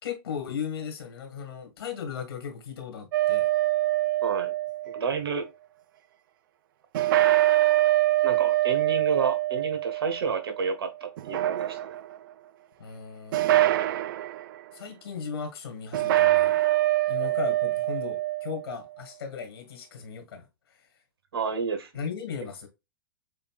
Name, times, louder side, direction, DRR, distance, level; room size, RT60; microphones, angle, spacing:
voice 1, 0.0-3.5 12.8-13.5 14.7-16.6 17.1-20.5 21.9-22.7, left 7 dB, 90° left, 2.0 m, -36 dB
sound 1, 3.1-5.2 6.9-10.7 11.2-12.2 13.3-14.4 15.9-18.6, right 15 dB, 65° right, 0.5 m, -24 dB
voice 2, 4.2-4.5 4.9-5.5 8.2-11.9 21.3-21.9, right 5 dB, 90° right, 1.3 m, -30 dB
6.8 x 2.7 x 2.4 m
hypercardioid pair, 135°, 12 cm